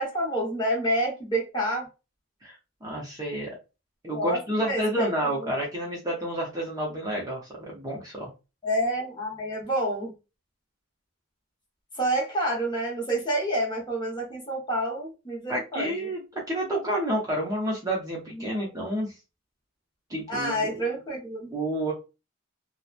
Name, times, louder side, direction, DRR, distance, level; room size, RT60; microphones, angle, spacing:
voice 1, 0.0-1.9 4.1-4.4 4.6-5.1 5.4-5.5 8.6-10.1 12.0-16.1 18.3-18.7 20.3-21.5, right 1 dB, 20° left, -3 dB, 0.9 m, -28 dB
voice 2, 2.8-3.5 4.0-8.3 15.5-19.1 20.1-20.8 21.5-21.9, right 1 dB, 15° right, -3 dB, 0.6 m, -29 dB
2.9 x 2.0 x 2.4 m, 0.29 s
head